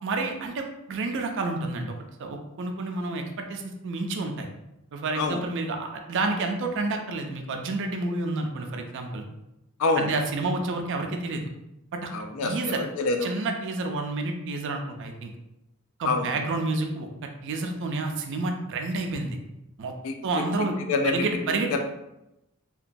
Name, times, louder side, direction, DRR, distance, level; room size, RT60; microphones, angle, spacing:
voice 1, 0.0-4.5 4.9-9.2 10.0-11.4 11.9-12.1 12.4-12.8 13.2-15.3 16.0-19.4 19.8-19.9 20.2-20.8 21.0-21.8, right 3 dB, 60° right, 4 dB, 0.4 m, -29 dB
voice 2, 12.1-13.3 16.0-16.3 20.0-20.2 20.9-21.3 21.7-21.8, left 3 dB, 75° left, 5 dB, 0.4 m, -26 dB
2.9 x 2.2 x 2.5 m, 0.90 s
head